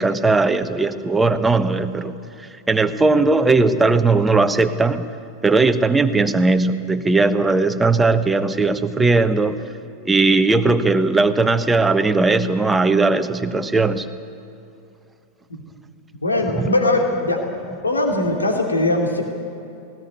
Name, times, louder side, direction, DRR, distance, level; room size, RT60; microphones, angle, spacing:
voice 1, 0.0-2.1 2.7-5.0 5.4-9.6 10.0-14.1 16.5-16.7, right 3 dB, 10° right, 9 dB, 1.1 m, -18 dB
voice 2, 16.2-17.4 17.8-19.2, left 2 dB, 80° left, 2 dB, 2.7 m, -20 dB
19.5 x 18.5 x 9.5 m, 2.6 s
figure-of-eight pair, 90°, 0 cm